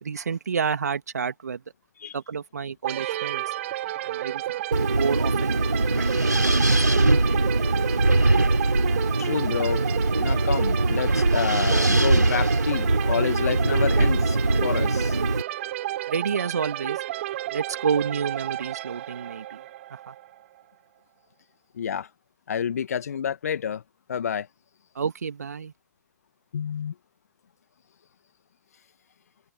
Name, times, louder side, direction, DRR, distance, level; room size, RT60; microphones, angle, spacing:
voice 1, 0.0-1.6 2.1-3.4 4.0-4.4 4.9-7.0 16.1-17.0 17.5-19.6 19.9-20.1 25.0-25.7, right 6 dB, 65° right, 2.2 m, -30 dB
sound 1, 2.8-20.4, right 14 dB, 45° right, 5.7 m, -32 dB
Wind, 4.7-15.4, right 2 dB, 85° right, 3.7 m, -22 dB
voice 2, 9.2-9.8 10.2-15.2 21.7-22.1 22.5-23.8 24.1-24.5 26.5-26.9, left 8 dB, 60° left, 1.6 m, -29 dB
open air
figure-of-eight pair, 115°, 9 cm